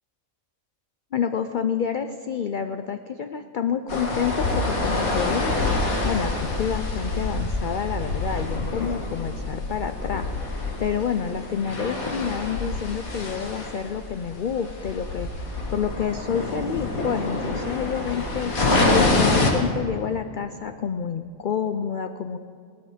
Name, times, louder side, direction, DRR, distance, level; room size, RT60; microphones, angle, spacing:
voice 1, 1.1-5.6 6.0-10.3 10.8-18.5 18.9-22.4, left 7 dB, 65° left, 8 dB, 0.5 m, -28 dB
sound 1, 3.9-19.5, left 2 dB, 85° left, 2.3 m, -26 dB
18.5 x 12.5 x 5.0 m, 2.4 s
omnidirectional pair, 1.4 m